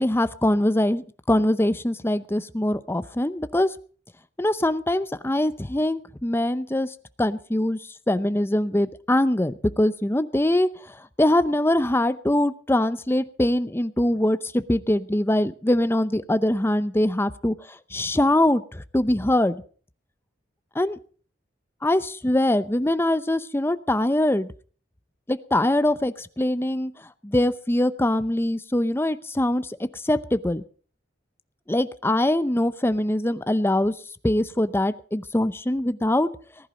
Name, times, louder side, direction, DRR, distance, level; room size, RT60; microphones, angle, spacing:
voice 1, 0.0-3.7 4.4-6.9 7.2-7.8 8.1-10.7 11.2-17.5 17.9-19.6 20.7-21.0 21.8-24.5 25.3-26.9 27.2-29.8 30.0-30.6 31.7-33.9 34.2-36.3, left 1 dB, 15° left, 13 dB, 0.7 m, -23 dB
19.5 x 11.0 x 5.2 m, 0.42 s
head